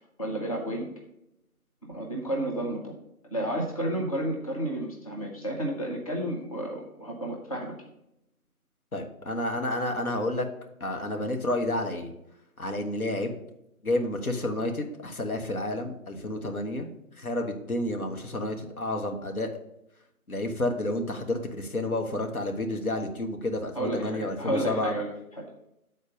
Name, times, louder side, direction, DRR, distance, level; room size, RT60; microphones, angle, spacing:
voice 1, 0.2-0.9 1.8-2.9 3.3-7.7 23.7-25.5, right 1 dB, 25° left, -1 dB, 0.7 m, -31 dB
voice 2, 8.9-10.4 10.8-12.1 12.6-13.4 13.8-16.9 17.2-19.5 20.3-24.9, left 1 dB, 75° left, 3 dB, 1.4 m, -30 dB
6.9 x 4.3 x 6.3 m, 0.83 s
figure-of-eight pair, 155°, 44 cm